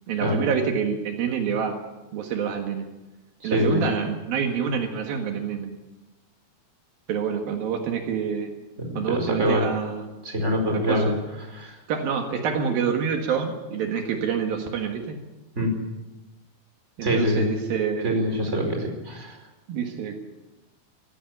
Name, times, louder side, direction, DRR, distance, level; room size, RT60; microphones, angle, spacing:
voice 1, 0.1-1.8 2.1-2.9 3.4-5.7 7.1-8.5 8.9-10.2 10.7-11.1 11.9-15.2 17.0-18.3 19.7-20.2, right 7 dB, 75° right, 4 dB, 3.4 m, -27 dB
voice 2, 3.4-3.8 8.8-9.6 10.2-11.1 11.5-11.8 15.6-15.8 17.0-17.4 18.0-19.4, equal, 20° right, 3 dB, 4.7 m, -24 dB
18.5 x 15.5 x 9.2 m, 1.1 s
omnidirectional pair, 4.3 m